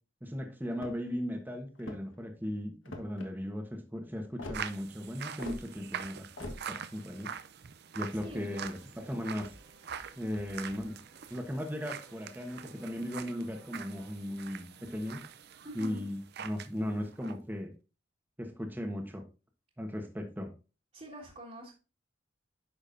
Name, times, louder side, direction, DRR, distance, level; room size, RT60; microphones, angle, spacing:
voice 1, 0.2-7.3 7.9-9.5 10.2-11.0 11.3-15.2 15.7-17.7 18.4-19.2 19.8-20.5, equal, 10° right, 3 dB, 1.2 m, -37 dB
sound 1, 0.7-1.2 1.7-2.2 2.8-3.3 4.4-4.6 5.4-5.6 6.4-6.6, left 2 dB, 80° left, 1.5 m, -42 dB
sound 2, 4.5-16.7 17.0-17.3, right 7 dB, 55° right, 0.5 m, -44 dB
sound 3, 8.0-14.1, right 1 dB, 85° right, 3.4 m, -59 dB
voice 2, 15.6-16.0 20.9-21.7, equal, 35° right, -4 dB, 1.9 m, -44 dB
10.0 x 6.3 x 2.6 m, 0.31 s
head